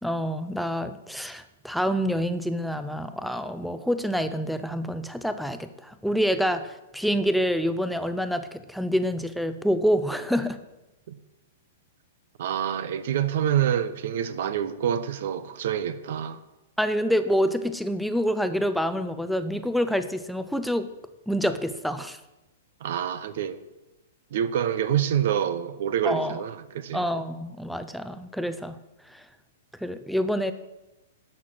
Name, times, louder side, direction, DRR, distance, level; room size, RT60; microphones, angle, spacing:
voice 1, 0.0-10.6 16.8-20.9 21.3-22.2 26.0-26.4 26.9-28.8 29.1-29.2 29.8-30.5, equal, ahead, 0.5 m, -27 dB
voice 2, 12.4-16.4 22.8-23.6 24.3-27.1, right 9 dB, 65° right, 0.8 m, -27 dB
11.0 x 6.7 x 6.1 m
hypercardioid pair, 125°, 0 cm